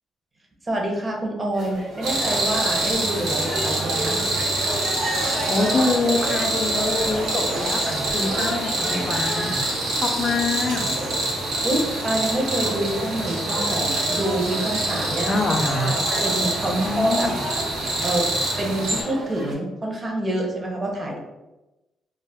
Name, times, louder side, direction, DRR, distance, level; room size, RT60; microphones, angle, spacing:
voice 1, 0.6-4.2 11.6-15.4 15.8-17.3 18.0-18.3 18.6-21.2, right 1 dB, 30° right, 0 dB, 0.7 m, -27 dB
sound 1, 1.5-19.5, right 1 dB, 55° right, 0.9 m, -32 dB
sound 2, 2.0-19.0, right 2 dB, 85° right, 0.7 m, -26 dB
voice 2, 5.5-9.6 10.0-10.8 15.3-16.0 16.7-17.4, left 3 dB, 45° left, 4 dB, 0.4 m, -25 dB
2.3 x 2.1 x 3.3 m, 1.0 s
cardioid pair, 90°, 0 cm